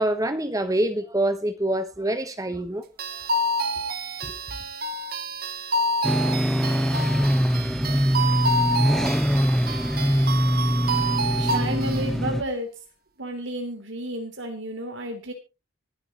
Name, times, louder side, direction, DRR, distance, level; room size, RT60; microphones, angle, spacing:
voice 1, 0.0-2.8 4.2-4.3, right 1 dB, 15° right, 1.2 m, -25 dB
sound 1, 3.0-12.1, right 1 dB, 50° right, 1.1 m, -28 dB
sound 2, 6.0-12.4, equal, ahead, 0.6 m, -23 dB
voice 2, 11.4-12.7 13.2-15.3, right 1 dB, 65° right, 3.3 m, -31 dB
24.5 x 8.2 x 3.1 m
head